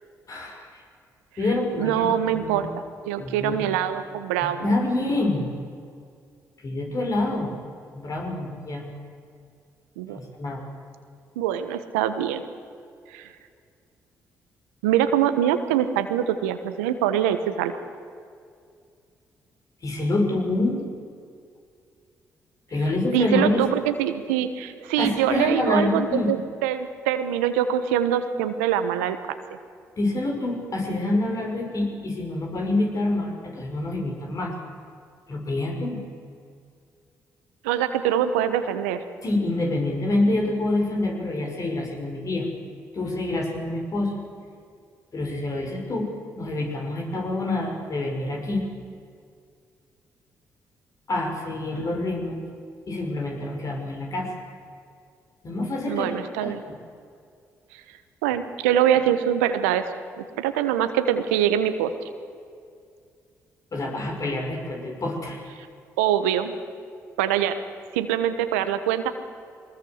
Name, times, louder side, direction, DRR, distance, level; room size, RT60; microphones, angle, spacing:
voice 1, 0.3-0.7 1.4-2.7 3.2-3.6 4.4-5.6 6.6-7.6 7.9-8.9 10.1-10.6 19.8-20.8 22.7-23.8 25.0-26.3 30.0-34.5 35.3-36.0 39.2-42.5 42.9-44.2 45.1-46.1 46.3-48.7 51.1-52.4 52.9-54.3 55.4-56.1 56.4-56.6 63.7-65.5, left 2 dB, 50° left, 1 dB, 6.0 m, -26 dB
voice 2, 1.8-2.7 3.1-4.7 10.0-10.2 11.4-12.4 13.1-13.3 14.8-17.8 23.1-26.4 26.6-29.4 37.6-39.0 55.9-56.6 58.2-59.9 60.2-61.9 66.0-66.5 67.2-67.6 67.9-69.1, right 10 dB, 90° right, 10 dB, 1.2 m, -24 dB
22.5 x 20.0 x 8.1 m, 2.3 s
hypercardioid pair, 45°, 7 cm